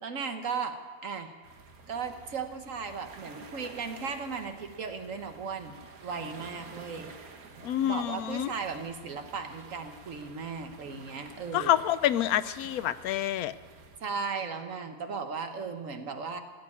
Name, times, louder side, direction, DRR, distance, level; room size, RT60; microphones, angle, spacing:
voice 1, 0.0-1.3 1.9-5.7 6.0-7.1 7.8-11.7 14.0-16.4, right 5 dB, 65° right, 6 dB, 1.5 m, -36 dB
sound 1, 1.4-14.0, right 4 dB, 85° right, 1.8 m, -50 dB
voice 2, 7.6-8.5 11.5-13.5, left 11 dB, 85° left, 15 dB, 1.1 m, -27 dB
17.0 x 7.9 x 9.7 m, 1.5 s
omnidirectional pair, 1.5 m